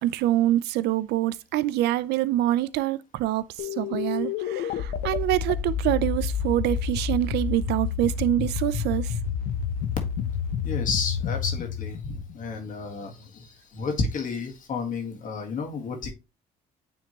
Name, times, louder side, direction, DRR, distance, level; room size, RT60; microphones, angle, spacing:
voice 1, 0.0-9.1, right 14 dB, 80° right, 0.4 m, -25 dB
sound 1, 3.6-12.9, left 7 dB, 85° left, 0.7 m, -29 dB
voice 2, 10.6-16.1, left 4 dB, 50° left, 1.7 m, -31 dB
9.3 x 3.5 x 2.9 m
cardioid pair, 110°, 17 cm